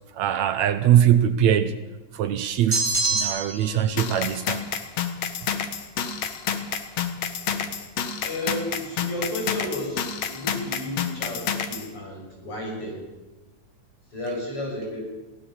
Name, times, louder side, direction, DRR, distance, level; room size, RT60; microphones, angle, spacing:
voice 1, 0.1-1.8 2.1-4.6 14.3-14.4, right 10 dB, 70° right, 11 dB, 2.0 m, -22 dB
sound 1, 2.7-3.7, right 2 dB, 10° right, 3.6 m, -24 dB
sound 2, 4.0-11.9, left 7 dB, 65° left, 2.5 m, -29 dB
voice 2, 7.3-7.7 8.2-13.0 14.1-15.0, left 1 dB, 45° left, -1 dB, 7.6 m, -33 dB
23.0 x 16.5 x 7.3 m, 1.2 s
omnidirectional pair, 3.4 m